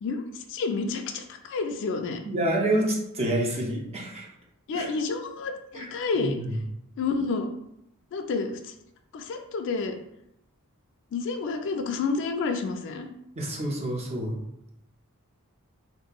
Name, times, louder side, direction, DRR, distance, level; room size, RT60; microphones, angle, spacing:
voice 1, 0.0-2.2 4.7-6.4 7.0-7.5 8.1-8.7 9.1-10.0 11.1-13.1, left 4 dB, 55° left, 6 dB, 0.3 m, -29 dB
voice 2, 2.3-4.3 4.7-4.9 5.7-5.9 6.2-6.6 13.4-14.4, right 1 dB, 30° right, -2 dB, 0.5 m, -28 dB
2.8 x 2.5 x 2.3 m, 0.79 s
head